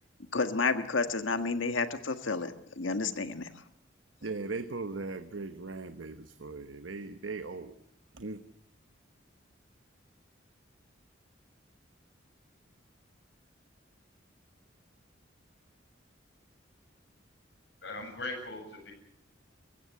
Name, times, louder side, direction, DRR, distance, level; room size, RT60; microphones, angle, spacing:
voice 1, 0.3-3.5, left 4 dB, 85° left, 8 dB, 1.6 m, -30 dB
voice 2, 4.2-7.7 8.1-8.4, right 3 dB, 85° right, 9 dB, 1.1 m, -38 dB
voice 3, 17.8-18.9, left 2 dB, 60° left, 2 dB, 7.5 m, -39 dB
24.0 x 15.0 x 8.3 m, 0.77 s
head